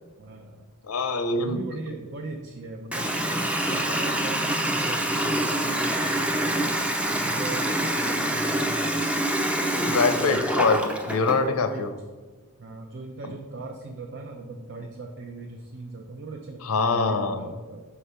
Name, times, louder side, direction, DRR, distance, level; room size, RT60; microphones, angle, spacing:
voice 1, 0.2-0.6 1.4-6.8 7.1-9.0 10.0-10.6 11.3-11.9 12.6-17.8, right 3 dB, 55° right, 2 dB, 0.6 m, -39 dB
voice 2, 0.9-1.8 9.9-11.9 16.6-17.5, left 4 dB, 80° left, 8 dB, 0.7 m, -24 dB
Water tap faucet, 2.9-11.4, right 1 dB, 5° right, 0.5 m, -26 dB
5.7 x 5.0 x 5.5 m, 1.3 s
head